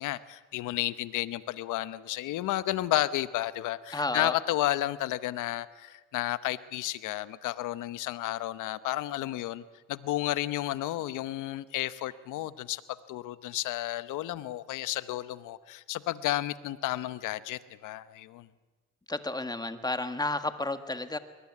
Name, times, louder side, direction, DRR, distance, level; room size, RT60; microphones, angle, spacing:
voice 1, 0.0-9.6 9.9-12.8 13.1-18.5, left 15 dB, 90° left, 15 dB, 0.9 m, -32 dB
voice 2, 3.9-4.3 19.1-21.2, left 2 dB, 15° left, 9 dB, 1.7 m, -31 dB
22.0 x 20.0 x 9.6 m, 1.3 s
cardioid pair, 90°, 30 cm